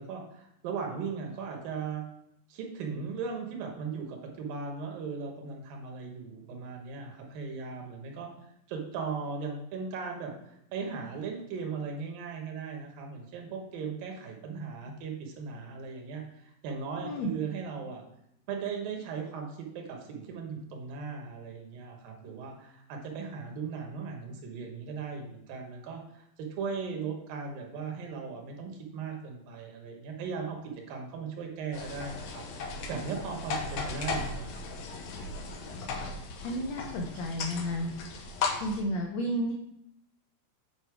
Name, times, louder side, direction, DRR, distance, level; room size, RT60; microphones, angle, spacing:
voice 1, 0.0-2.1 2.5-18.0 18.5-32.4 32.9-34.6, right 5 dB, 75° right, 2 dB, 2.9 m, -38 dB
sound 1, 31.7-38.8, left 4 dB, 65° left, 1.9 m, -36 dB
voice 2, 36.4-37.9 38.6-39.5, equal, 90° left, 2 dB, 1.5 m, -32 dB
8.5 x 5.4 x 4.7 m, 0.79 s
omnidirectional pair, 4.2 m